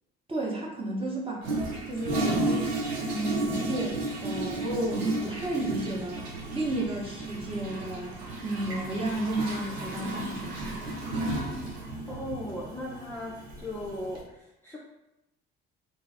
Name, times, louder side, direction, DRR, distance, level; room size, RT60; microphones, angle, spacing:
voice 1, 0.3-1.5 1.9-2.7 3.0-6.2 6.5-8.1 8.4-10.9, right 1 dB, 15° right, -3 dB, 0.9 m, -32 dB
Toilet flush, 1.4-14.2, right 2 dB, 80° right, 0.7 m, -33 dB
voice 2, 12.1-14.8, left 1 dB, 5° left, -6 dB, 0.5 m, -37 dB
2.7 x 2.3 x 3.3 m, 0.93 s
figure-of-eight pair, 55°, 32 cm